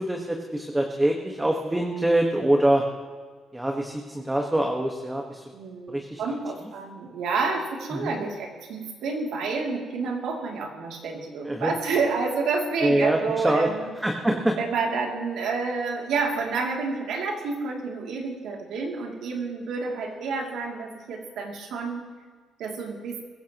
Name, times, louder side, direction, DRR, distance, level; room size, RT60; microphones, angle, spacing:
voice 1, 0.0-2.8 3.5-5.4 5.9-6.2 7.9-8.1 11.4-11.7 12.8-13.2 13.4-13.7 14.0-14.6, right 1 dB, 10° right, 1 dB, 1.6 m, -24 dB
voice 2, 5.5-13.8 14.6-22.1 22.6-23.2, right 4 dB, 80° right, 0 dB, 2.9 m, -29 dB
23.0 x 15.5 x 3.1 m, 1.4 s
cardioid pair, 90°, 0 cm